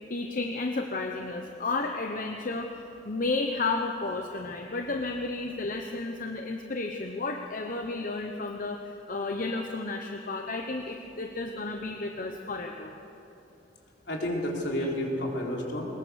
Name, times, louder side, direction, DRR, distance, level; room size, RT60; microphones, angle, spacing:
voice 1, 0.0-12.9 14.8-14.9, left 3 dB, 50° left, 3 dB, 1.0 m, -32 dB
voice 2, 14.1-15.9, equal, 65° left, -2 dB, 3.9 m, -30 dB
21.5 x 21.0 x 6.5 m, 2.9 s
head